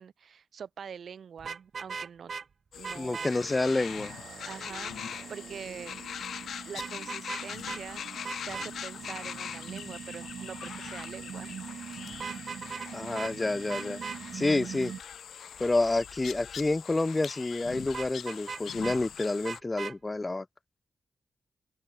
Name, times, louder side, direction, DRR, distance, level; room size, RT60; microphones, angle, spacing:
voice 1, 0.0-2.3 2.7-3.3 4.5-6.0 6.6-11.6, right 7 dB, 70° right, 4.9 m, -44 dB
Vehicle horn car horn honking, 1.4-2.4 2.8-3.3 6.8-7.4 7.7-7.8 8.2-8.7 12.1-12.9 13.1-13.3 13.7-14.2 17.9-19.0 19.4-19.9, right 5 dB, 55° right, 3.3 m, -38 dB
sound 1, 2.7-19.6, left 8 dB, 85° left, 2.3 m, -42 dB
voice 2, 3.0-4.1 12.9-14.0 14.3-14.9 15.6-20.5, left 2 dB, 25° left, 3.8 m, -29 dB
sound 2, 3.3-15.0, right 8 dB, 90° right, 5.5 m, -44 dB
open air
wide cardioid pair, 95°, 0 cm